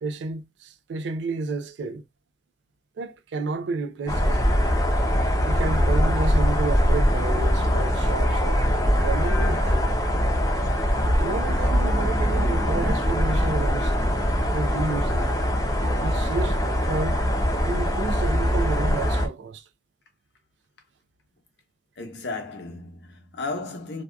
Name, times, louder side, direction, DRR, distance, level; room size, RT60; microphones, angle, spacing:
voice 1, 0.0-2.0 3.0-4.6 5.4-9.9 11.2-13.9 14.5-15.4 16.0-17.2 17.6-19.7, right 3 dB, 80° right, 0.4 m, -31 dB
sound 1, 4.1-19.3, equal, 20° left, 0.5 m, -22 dB
voice 2, 22.0-24.0, left 3 dB, 70° left, 0.7 m, -34 dB
2.6 x 2.2 x 2.2 m
head